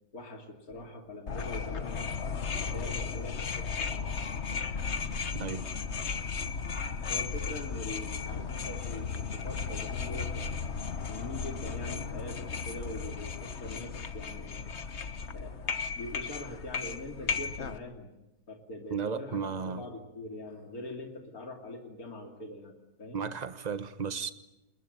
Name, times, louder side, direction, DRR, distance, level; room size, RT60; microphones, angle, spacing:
voice 1, 0.1-2.2 2.5-4.7 7.1-10.7 11.1-14.7 15.3-18.1 18.5-23.2, left 1 dB, 65° left, 3.3 m, -43 dB
sound 1, 1.3-17.8, left 5 dB, 45° left, 1.4 m, -35 dB
voice 2, 5.3-5.7 18.9-19.8 23.1-24.3, right 6 dB, 30° right, 1.2 m, -34 dB
29.5 x 20.5 x 9.3 m
omnidirectional pair, 1.7 m